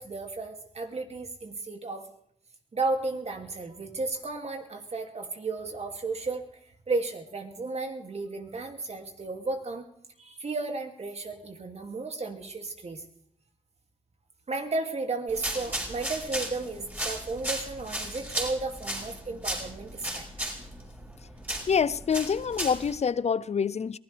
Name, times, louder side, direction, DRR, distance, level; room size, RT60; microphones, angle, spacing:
voice 1, 0.0-2.1 2.7-6.5 6.9-9.8 10.2-13.0 14.5-20.3, right 3 dB, 55° right, 2.5 m, -33 dB
sound 1, 15.3-23.0, right 1 dB, 15° right, 5.7 m, -35 dB
voice 2, 21.7-24.0, left 6 dB, 55° left, 0.5 m, -26 dB
22.5 x 16.5 x 3.4 m
cardioid pair, 55°, 14 cm